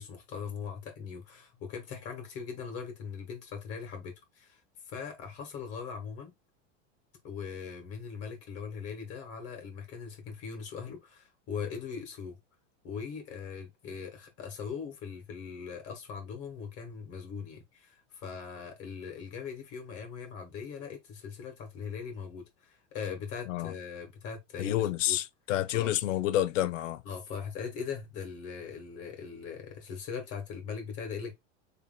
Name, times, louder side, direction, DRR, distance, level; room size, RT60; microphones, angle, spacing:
voice 1, 0.0-4.6 4.9-6.3 7.2-12.4 12.8-25.2 25.7-25.9 27.0-31.3, left 6 dB, 40° left, 1.8 m, -40 dB
voice 2, 24.6-27.0, left 13 dB, 90° left, 0.6 m, -29 dB
3.4 x 2.8 x 3.9 m
supercardioid pair, 125°, 37 cm